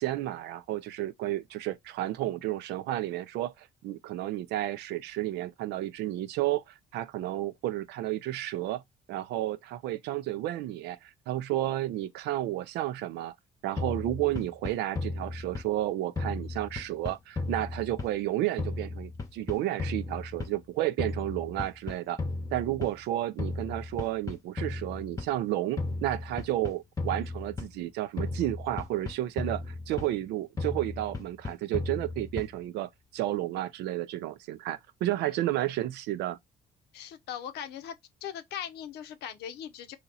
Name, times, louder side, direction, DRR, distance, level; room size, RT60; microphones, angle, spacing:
voice 1, 0.0-8.8 9.1-13.3 13.6-22.2 22.5-36.4, right 14 dB, 80° right, 0.5 m, -32 dB
sound 1, 13.8-15.9 16.2-18.3 18.6-20.7 21.0-23.1 23.4-25.4 25.8-27.9 28.2-30.3 30.6-32.7, left 3 dB, 20° left, 0.9 m, -35 dB
voice 2, 35.2-35.7 36.9-38.0 38.2-40.0, left 9 dB, 80° left, 0.7 m, -40 dB
2.8 x 2.8 x 3.9 m
cardioid pair, 110°, 17 cm